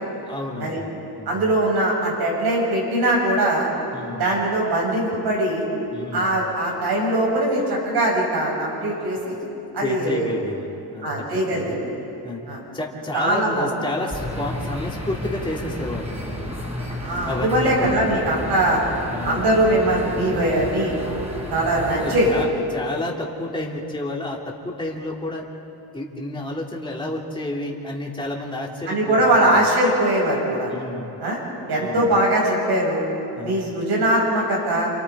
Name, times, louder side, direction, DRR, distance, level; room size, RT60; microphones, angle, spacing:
voice 1, 0.3-1.4 3.9-4.4 5.9-6.4 9.8-11.8 12.2-12.4 12.7-16.5 17.2-18.0 19.1-19.5 22.0-25.5 25.9-29.6 30.7-31.1 31.8-32.1 33.3-33.7, left 1 dB, 10° left, -3 dB, 2.9 m, -30 dB
voice 2, 1.3-3.7 4.2-5.6 6.1-9.3 9.7-10.3 11.0-11.9 12.5-12.6 13.1-13.7 17.0-18.8 19.2-20.9 21.5-22.3 28.9-30.7 31.2-31.4 31.7-33.0 33.4-34.9, right 1 dB, 70° right, -3 dB, 7.7 m, -21 dB
sound 1, 14.1-22.4, left 1 dB, 15° right, 4.0 m, -32 dB
29.5 x 28.0 x 4.9 m, 3.0 s
wide cardioid pair, 145°, 41 cm